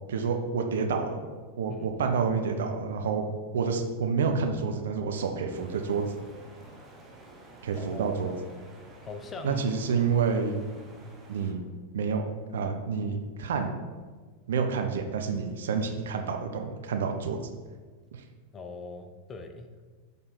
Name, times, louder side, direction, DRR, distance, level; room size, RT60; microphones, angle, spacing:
voice 1, 0.1-1.2 1.6-3.2 3.5-6.1 7.6-8.3 9.4-10.6 11.3-11.6 11.9-12.2 12.5-13.8 14.5-17.4 18.1-18.2, right 5 dB, 60° right, 5 dB, 0.6 m, -28 dB
sound 1, 5.5-11.5, right 1 dB, 15° right, 1.1 m, -50 dB
voice 2, 9.0-9.7 10.0-10.1 18.5-19.9, left 3 dB, 20° left, 6 dB, 0.5 m, -41 dB
6.6 x 3.4 x 4.1 m, 1.4 s
figure-of-eight pair, 90°, 0 cm